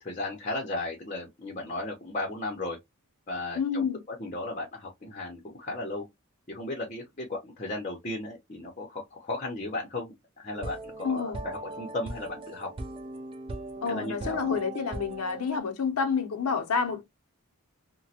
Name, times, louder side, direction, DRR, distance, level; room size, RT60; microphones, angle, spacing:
voice 1, 0.0-2.8 3.3-3.9 4.2-6.0 6.5-12.7 13.9-14.6, left 2 dB, 30° left, 0.7 m, -35 dB
voice 2, 3.5-4.0 11.0-11.4 13.8-17.1, left 5 dB, 85° left, 0.7 m, -29 dB
sound 1, 10.5-15.6, right 2 dB, 25° right, 0.4 m, -39 dB
3.0 x 2.2 x 2.7 m
head